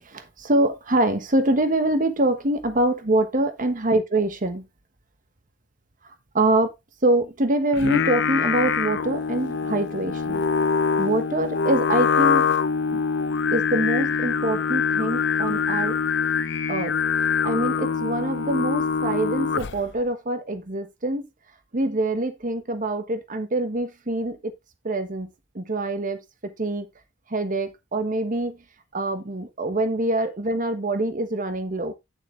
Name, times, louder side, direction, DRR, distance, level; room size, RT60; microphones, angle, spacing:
voice 1, 0.0-4.6 6.0-6.7 7.0-10.4 11.0-12.5 12.9-13.0 13.5-15.9 16.7-17.0 17.4-21.3 21.7-24.5 24.8-25.3 25.5-26.9 27.3-28.6 28.9-31.9, right 2 dB, 45° right, 1.3 m, -25 dB
Singing, 7.7-19.9, left 6 dB, 65° left, 0.6 m, -24 dB
9.2 x 7.5 x 3.2 m
head